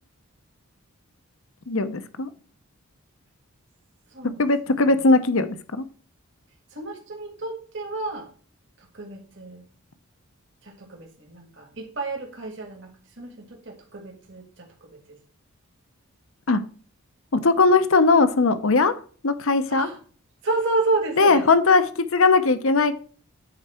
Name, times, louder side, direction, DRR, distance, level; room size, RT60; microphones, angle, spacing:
voice 1, 1.7-2.3 4.2-5.8 16.5-16.6 17.3-18.9 19.2-19.9 21.2-21.8 22.1-23.0, left 3 dB, 65° left, 12 dB, 0.8 m, -19 dB
voice 2, 4.1-4.5 4.7-4.8 6.7-8.3 8.8-9.7 10.6-15.2 19.7-20.0 20.4-21.5, right 2 dB, 55° right, 2 dB, 1.8 m, -31 dB
9.7 x 4.5 x 4.4 m, 0.42 s
head